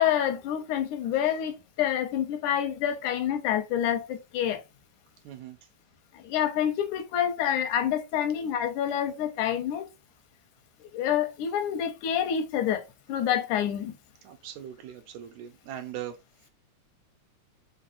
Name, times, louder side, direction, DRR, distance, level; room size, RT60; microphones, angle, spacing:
voice 1, 0.0-4.6 6.1-9.9 10.9-13.9, left 10 dB, 85° left, 2.2 m, -27 dB
voice 2, 5.2-5.6 14.2-16.2, right 11 dB, 80° right, 1.9 m, -40 dB
5.2 x 2.8 x 2.5 m
omnidirectional pair, 3.4 m